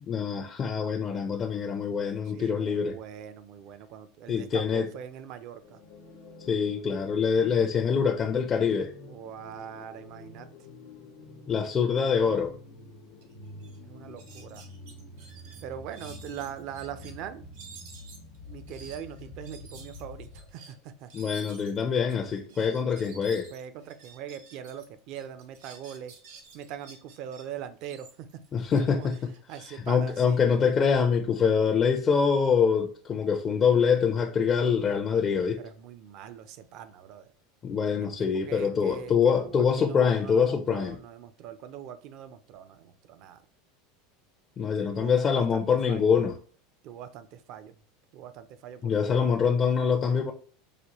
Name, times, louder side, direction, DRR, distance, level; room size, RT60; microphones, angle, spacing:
voice 1, 0.0-3.0 4.3-4.9 6.5-8.9 11.5-12.5 21.1-23.5 28.5-29.3 29.7-35.6 37.6-41.0 44.6-46.3 48.8-50.3, left 6 dB, 30° left, 0.4 m, -25 dB
voice 2, 2.3-5.8 9.0-10.5 13.8-14.7 15.6-17.4 18.4-21.1 23.5-26.1 26.5-28.4 28.8-29.1 29.5-30.4 35.6-37.3 37.9-43.4 44.6-46.1 46.8-47.7 48.1-49.3, right 9 dB, 55° right, 0.5 m, -42 dB
sound 1, 5.6-20.6, left 2 dB, 80° left, 0.9 m, -48 dB
sound 2, 13.2-13.3 13.6-13.8 14.2-17.1 17.5-24.8 25.1-27.4 27.8-30.7, right 5 dB, 80° right, 1.2 m, -51 dB
4.9 x 2.2 x 3.0 m
supercardioid pair, 105°, 0 cm